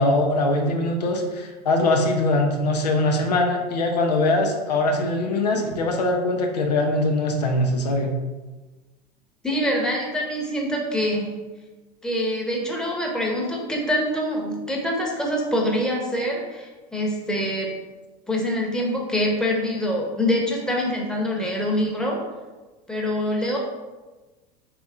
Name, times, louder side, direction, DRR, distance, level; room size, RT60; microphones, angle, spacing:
voice 1, 0.0-8.1, left 2 dB, 90° left, 3 dB, 0.5 m, -22 dB
voice 2, 9.4-11.3 12.0-17.7 18.3-22.2 22.9-23.6, equal, 5° left, -1 dB, 0.9 m, -25 dB
3.4 x 3.0 x 3.5 m, 1.2 s
hypercardioid pair, 85°, 20 cm